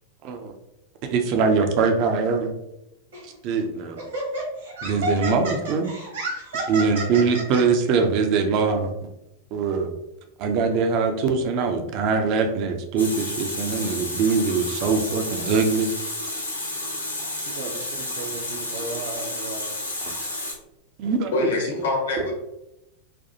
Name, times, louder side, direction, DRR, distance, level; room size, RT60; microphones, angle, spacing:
voice 1, 0.2-0.5 1.1-2.5 3.2-4.1 4.8-5.9 6.7-8.9 9.5-9.9 10.4-15.9 17.5-19.7 20.0-20.1 21.0-21.5, right 5 dB, 40° right, 5 dB, 0.5 m, -23 dB
Laughter, 3.1-3.3 4.0-7.6, right 2 dB, 65° right, 1.3 m, -30 dB
Water tap faucet, 13.0-20.5, left 2 dB, 80° left, 0.6 m, -31 dB
voice 2, 13.7-14.1 16.5-18.7, left 3 dB, 25° left, 0 dB, 0.6 m, -55 dB
voice 3, 21.3-22.3, left 3 dB, 65° left, 0 dB, 1.0 m, -24 dB
4.2 x 2.3 x 2.6 m, 0.88 s
figure-of-eight pair, 90°, 0 cm